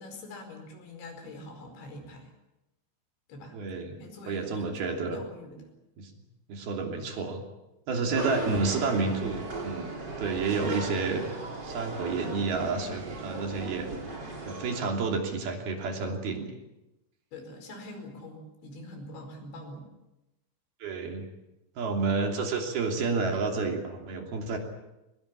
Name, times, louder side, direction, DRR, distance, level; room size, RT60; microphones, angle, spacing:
voice 1, 0.0-2.3 3.3-3.6 3.8-5.7 8.0-8.1 17.3-19.9, left 2 dB, 85° left, 5 dB, 7.2 m, -44 dB
voice 2, 3.5-3.9 4.3-5.2 6.0-6.1 6.5-7.4 7.9-9.9 10.2-11.2 11.6-13.9 14.5-16.6 20.8-21.2 21.8-24.6, right 4 dB, 60° right, 3 dB, 4.8 m, -30 dB
sound 1, 8.1-14.9, right 2 dB, 25° right, 3.8 m, -37 dB
23.5 x 20.5 x 8.7 m, 0.95 s
omnidirectional pair, 5.1 m